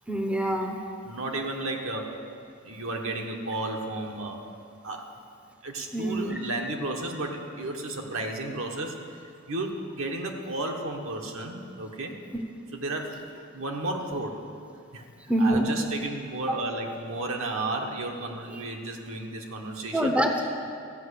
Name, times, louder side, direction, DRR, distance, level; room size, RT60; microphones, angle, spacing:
voice 1, 0.1-0.8 5.9-6.4 15.3-15.6 19.9-20.5, right 1 dB, 5° right, 2 dB, 0.8 m, -25 dB
voice 2, 1.0-2.2 2.6-4.4 4.8-5.0 5.6-9.0 9.5-12.2 12.7-13.2 13.5-14.4 14.9-15.0 15.4-20.1, right 2 dB, 70° right, 1 dB, 1.3 m, -33 dB
13.5 x 5.6 x 8.3 m, 2.5 s
head